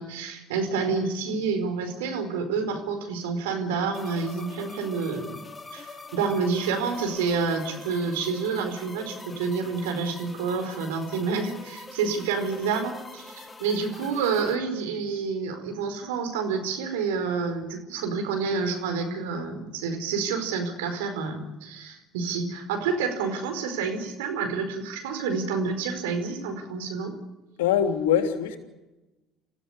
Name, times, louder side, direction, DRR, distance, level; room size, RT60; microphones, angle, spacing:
voice 1, 0.0-5.4 5.7-27.1, right 5 dB, 80° right, 6 dB, 4.8 m, -28 dB
sound 1, 3.9-14.6, left 3 dB, 25° left, 2.5 m, -44 dB
voice 2, 27.6-28.6, left 9 dB, 80° left, 6 dB, 3.1 m, -23 dB
28.5 x 16.0 x 9.9 m, 1.0 s
hypercardioid pair, 65°, 0 cm